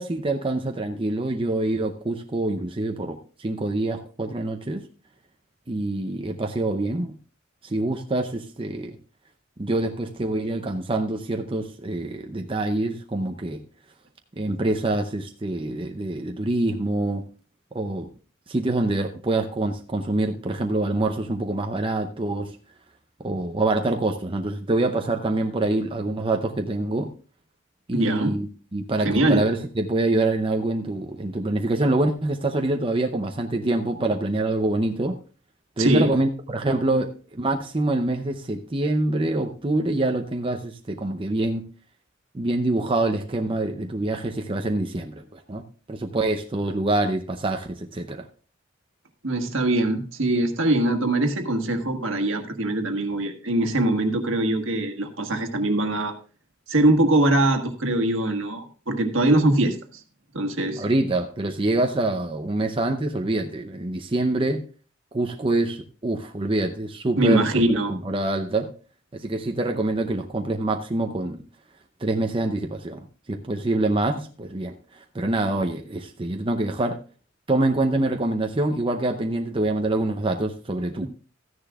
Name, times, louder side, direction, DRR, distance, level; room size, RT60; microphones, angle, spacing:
voice 1, 0.0-4.8 5.7-7.2 7.6-9.0 9.6-13.6 14.4-17.2 17.7-18.1 18.5-22.6 23.2-27.1 27.9-35.2 35.8-41.6 42.3-45.6 45.9-48.3 60.8-64.6 65.1-67.4 67.9-68.7 69.1-71.4 72.0-77.0 77.5-81.1, right 2 dB, 25° right, 4 dB, 0.6 m, -25 dB
voice 2, 27.9-28.4 29.0-29.4 35.8-36.1 49.2-56.1 56.7-60.0 60.3-60.8 67.2-67.9, right 1 dB, 70° right, 5 dB, 1.5 m, -22 dB
14.0 x 10.0 x 2.4 m, 0.38 s
head